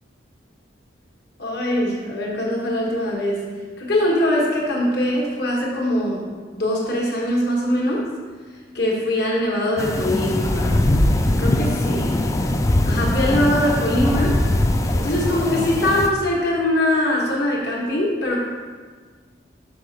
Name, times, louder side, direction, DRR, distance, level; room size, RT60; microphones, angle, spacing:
voice 1, 1.4-3.5 3.8-6.3 6.6-8.1 8.7-10.9 11.4-12.2 12.8-14.4 14.9-18.4, left 1 dB, 60° left, -3 dB, 1.3 m, -22 dB
sound 1, 9.8-16.1, left 1 dB, 15° left, 0.3 m, -21 dB
6.3 x 4.8 x 3.3 m, 1.5 s
head